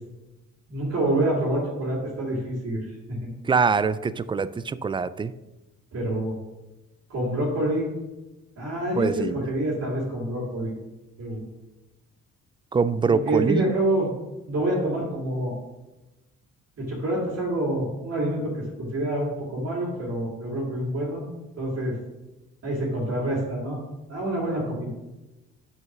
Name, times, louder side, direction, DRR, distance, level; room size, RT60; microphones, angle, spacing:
voice 1, 0.7-3.3 5.9-6.3 7.1-7.9 8.6-10.7 11.2-11.4 13.1-14.1 14.5-15.5 16.8-21.2 21.6-21.9 22.6-23.8 24.1-24.9, right 1 dB, 55° right, -8 dB, 2.7 m, -27 dB
voice 2, 3.4-5.3 9.0-9.4 12.7-13.6, right 5 dB, 15° right, 16 dB, 0.3 m, -24 dB
6.2 x 5.6 x 6.0 m, 1.1 s
cardioid pair, 90°, 30 cm